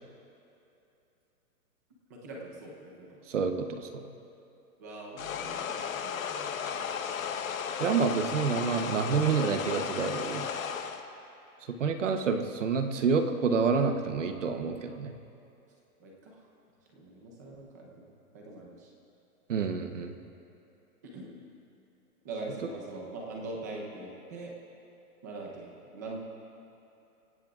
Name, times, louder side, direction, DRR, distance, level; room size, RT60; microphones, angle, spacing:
voice 1, 2.1-3.2 4.8-6.9 16.0-16.4 16.9-18.9 21.0-21.4 22.2-24.5 25.2-26.2, right 2 dB, 10° right, -1 dB, 0.8 m, -43 dB
voice 2, 3.3-4.0 7.8-10.5 11.8-15.1 19.5-20.1, right 5 dB, 50° right, 6 dB, 1.0 m, -28 dB
sound 1, 5.2-11.0, left 7 dB, 60° left, 1.1 m, -34 dB
26.0 x 16.5 x 2.5 m, 2.8 s
hypercardioid pair, 180°, 46 cm